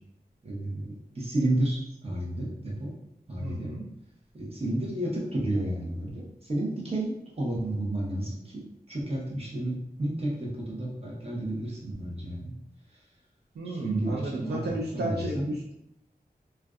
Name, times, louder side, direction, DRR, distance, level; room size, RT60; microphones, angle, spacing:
voice 1, 0.4-2.9 3.3-3.7 4.3-12.5 13.8-14.6 14.9-15.5, right 1 dB, 40° right, -4 dB, 0.8 m, -31 dB
voice 2, 3.4-3.9 13.5-15.7, right 1 dB, 90° right, -2 dB, 0.4 m, -33 dB
2.4 x 2.2 x 2.3 m, 0.79 s
wide cardioid pair, 65°, 16 cm